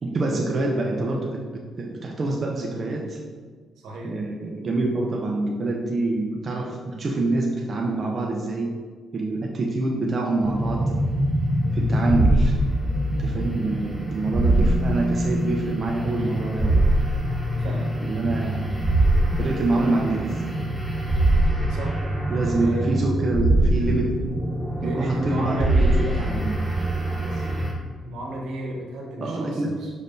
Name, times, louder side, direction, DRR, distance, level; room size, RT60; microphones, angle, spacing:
voice 1, 0.0-3.2 4.0-8.8 9.1-10.9 11.7-12.6 13.1-16.8 18.0-18.9 19.4-20.4 22.3-24.2 24.8-26.6 29.2-29.9, right 2 dB, 40° right, -1 dB, 0.5 m, -26 dB
voice 2, 3.8-4.1 16.2-16.3 17.5-17.9 21.7-21.9 22.4-22.9 24.8-26.3 27.2-27.5 28.0-29.9, equal, 80° right, -2 dB, 1.0 m, -33 dB
sound 1, 10.4-27.7, right 1 dB, ahead, 0.8 m, -23 dB
5.4 x 3.4 x 2.6 m, 1.5 s
cardioid pair, 90°, 0 cm